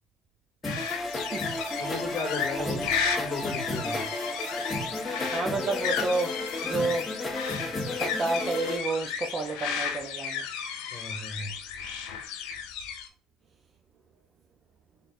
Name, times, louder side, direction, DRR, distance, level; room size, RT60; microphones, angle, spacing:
sound 1, 0.6-13.1, left 7 dB, 85° left, 0.6 m, -34 dB
sound 2, 0.6-8.8, left 2 dB, 15° left, 1.4 m, -33 dB
voice 1, 1.8-4.0 10.9-11.6, left 3 dB, 35° left, 1.7 m, -35 dB
voice 2, 2.6-2.9 5.3-6.4 6.6-7.1 8.0-10.4, right 3 dB, 40° right, 0.6 m, -30 dB
4.0 x 3.7 x 2.6 m
supercardioid pair, 95°, 0 cm